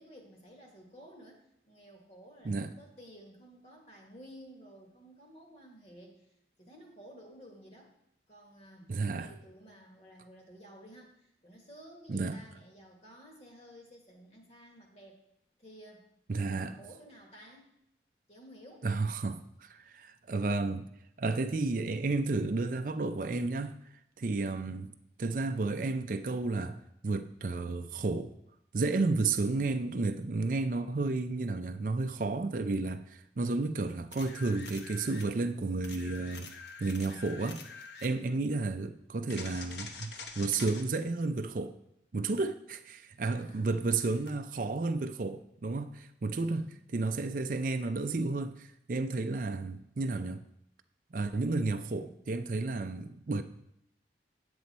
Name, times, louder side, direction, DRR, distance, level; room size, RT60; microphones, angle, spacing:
voice 1, 0.0-6.3 6.6-7.9 8.3-15.2 15.6-16.1 16.5-17.7 18.3-18.9 43.3-43.9 46.3-46.8, equal, 35° left, 1.6 m, -54 dB
voice 2, 8.9-9.3 12.1-12.4 16.3-16.8 18.8-20.9 21.2-23.8 24.2-24.9 25.2-28.3 28.7-36.5 36.8-37.6 38.0-41.7 42.1-50.4 51.1-53.4, right 3 dB, 45° right, 0.4 m, -32 dB
sound 1, 34.1-35.3 35.8-38.1 39.3-40.8 44.3-44.4, left 5 dB, 75° left, 0.9 m, -46 dB
9.2 x 7.0 x 4.2 m
head